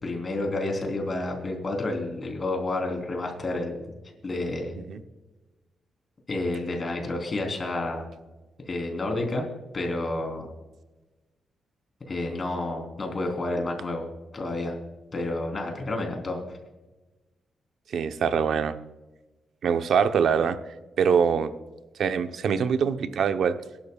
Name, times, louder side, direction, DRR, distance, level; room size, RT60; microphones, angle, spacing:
voice 1, 0.0-3.9 4.2-4.7 6.3-8.1 8.7-9.5 9.7-10.5 12.1-14.1 14.3-14.7 15.1-16.6, left 2 dB, 35° left, 2 dB, 3.5 m, -30 dB
voice 2, 17.9-18.7 19.6-20.6 21.0-21.5 22.0-23.6, right 7 dB, 70° right, 9 dB, 0.8 m, -23 dB
22.5 x 12.0 x 2.4 m, 1.1 s
cardioid pair, 105°, 0 cm